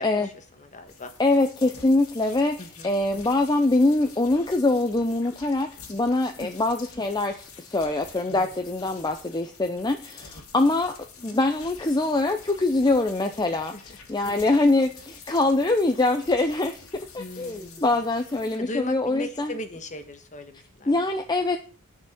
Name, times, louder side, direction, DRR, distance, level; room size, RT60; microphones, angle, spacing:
voice 1, 0.0-1.1 2.6-2.9 6.4-6.5 8.3-8.6 10.3-10.7 13.5-13.8 14.2-14.5 17.2-18.1 18.6-21.1, left 2 dB, 35° left, 7 dB, 1.4 m, -38 dB
sound 1, 0.9-18.6, left 5 dB, 70° left, 2.3 m, -48 dB
voice 2, 1.2-10.9 11.2-19.6 20.9-21.6, left 2 dB, 20° left, 5 dB, 0.7 m, -24 dB
9.4 x 6.0 x 7.1 m, 0.39 s
head